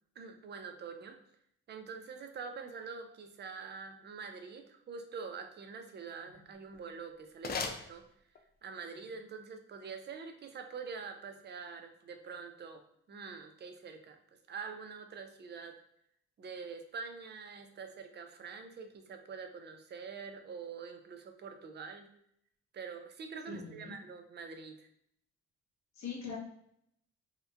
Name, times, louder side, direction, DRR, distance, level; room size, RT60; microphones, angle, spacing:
voice 1, 0.2-1.2 1.7-8.1 8.6-14.2 14.5-15.8 16.4-22.1 22.7-24.9, right 5 dB, 35° right, 6 dB, 0.4 m, -45 dB
sound 1, 6.6-8.6, left 4 dB, 35° left, 0.4 m, -41 dB
voice 2, 23.5-23.9 26.0-26.4, left 5 dB, 65° left, -2 dB, 1.0 m, -41 dB
2.8 x 2.1 x 2.4 m, 0.71 s
cardioid pair, 90°, 30 cm